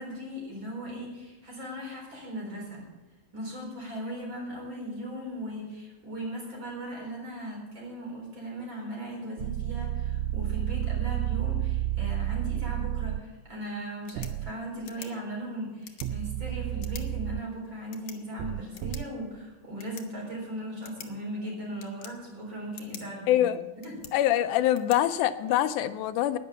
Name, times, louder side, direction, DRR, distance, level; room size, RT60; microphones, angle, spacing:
voice 1, 0.0-2.8 3.3-23.5 23.8-23.9, equal, 35° right, -2 dB, 4.8 m, -38 dB
sound 1, 9.4-13.2 14.2-14.5 16.0-17.4 18.4-19.0, right 14 dB, 85° right, 1.5 m, -30 dB
sound 2, 13.9-25.9, left 9 dB, 65° left, 1.9 m, -51 dB
voice 2, 23.3-23.6 24.1-26.4, left 12 dB, 85° left, 11 dB, 2.0 m, -24 dB
11.0 x 10.0 x 6.9 m, 1.1 s
omnidirectional pair, 3.6 m